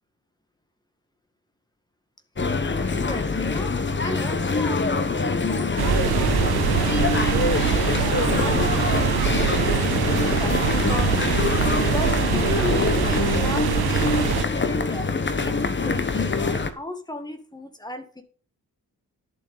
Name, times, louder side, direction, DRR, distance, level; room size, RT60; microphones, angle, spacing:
sound 1, 2.4-16.7, left 4 dB, 30° left, 1.1 m, -24 dB
voice 1, 2.8-3.7 4.0-11.5 11.9-15.1 15.4-18.2, left 1 dB, 10° left, 6 dB, 1.8 m, -35 dB
sound 2, 5.8-14.4, right 11 dB, 80° right, 0.6 m, -24 dB
11.5 x 7.6 x 5.6 m, 0.40 s
wide cardioid pair, 130°, 37 cm